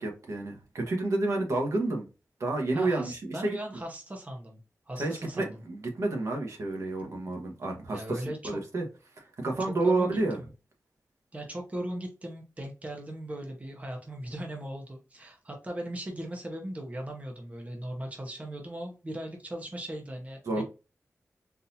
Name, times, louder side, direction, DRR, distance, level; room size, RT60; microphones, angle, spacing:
voice 1, 0.0-2.0 2.4-3.6 5.0-8.9 9.2-10.4 20.5-20.6, right 2 dB, 70° right, 1.2 m, -30 dB
voice 2, 2.7-4.6 4.9-5.6 7.9-8.6 9.6-10.5 11.3-20.6, right 1 dB, 25° right, 0.9 m, -38 dB
4.0 x 2.7 x 2.7 m
wide cardioid pair, 85°, 6 cm